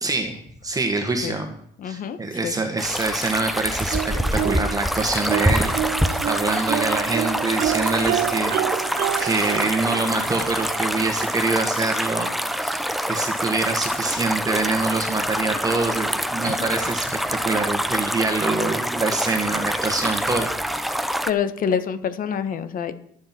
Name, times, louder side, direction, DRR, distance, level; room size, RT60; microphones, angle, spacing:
voice 1, 0.0-1.5 1.8-8.9 9.2-20.9, right 3 dB, 20° right, 5 dB, 1.7 m, -25 dB
voice 2, 1.8-2.2 2.4-2.5 16.4-16.6 21.3-22.9, left 7 dB, 55° left, 12 dB, 1.4 m, -26 dB
sound 1, 2.8-21.3, equal, ahead, 0.8 m, -26 dB
sound 2, 3.9-4.9 5.3-11.0 12.2-12.3 12.7-12.8, right 12 dB, 65° right, 0.7 m, -28 dB
23.0 x 7.8 x 4.5 m, 0.66 s
cardioid pair, 110°, 17 cm